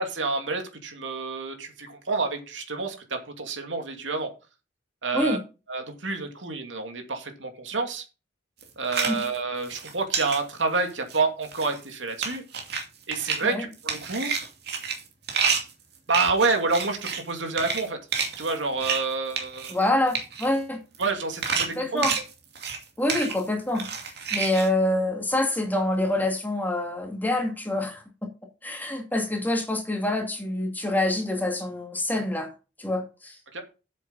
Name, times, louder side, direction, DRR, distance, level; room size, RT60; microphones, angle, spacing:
voice 1, 0.0-4.3 5.0-5.4 5.7-8.0 8.8-12.4 13.1-14.3 16.1-18.0 18.4-19.8 21.0-22.1 33.5-33.6, right 3 dB, 90° right, 2.6 m, -28 dB
sound 1, 8.6-9.4 9.6-10.4 10.9-11.2 11.4-11.9 12.2-12.8 13.1-13.4 13.7-17.3 17.6-17.9 18.1-19.0 19.3-19.8 20.1-20.5 20.9-21.1 21.4-22.8 23.1-23.4 23.7-24.7, right 6 dB, 60° right, 2.5 m, -29 dB
voice 2, 19.7-20.8 21.8-22.2 23.0-23.9 24.3-28.0 28.6-32.5 32.8-33.6, left 1 dB, 10° left, 2.3 m, -26 dB
8.2 x 7.3 x 5.5 m
head